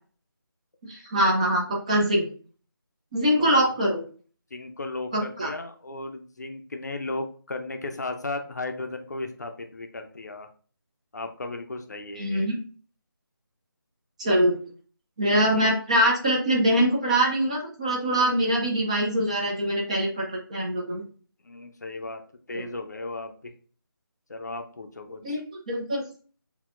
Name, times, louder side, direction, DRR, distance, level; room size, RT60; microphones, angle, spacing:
voice 1, 0.8-2.3 3.1-4.0 5.1-5.5 12.2-12.5 14.2-14.5 15.2-21.0 22.5-22.7 25.2-26.0, right 1 dB, 15° right, -1 dB, 0.6 m, -23 dB
voice 2, 4.5-10.5 11.1-12.5 18.3-18.4 21.4-22.2 22.5-23.5 24.3-25.4, left 2 dB, 45° left, 5 dB, 0.6 m, -35 dB
6.5 x 2.8 x 2.5 m, 0.41 s
figure-of-eight pair, 160°, 12 cm